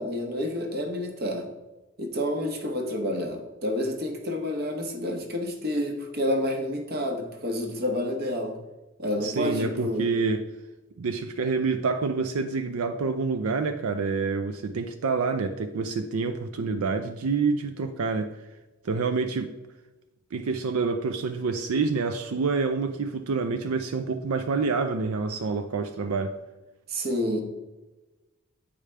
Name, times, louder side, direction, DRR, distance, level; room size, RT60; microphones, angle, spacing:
voice 1, 0.0-1.5 2.0-8.6 9.0-10.1 26.9-27.4, left 1 dB, 45° right, 4 dB, 1.0 m, -29 dB
voice 2, 9.2-10.5 11.0-18.3 18.8-19.5 20.3-26.4, right 4 dB, 85° right, 7 dB, 0.5 m, -27 dB
8.6 x 4.9 x 3.3 m, 1.1 s
head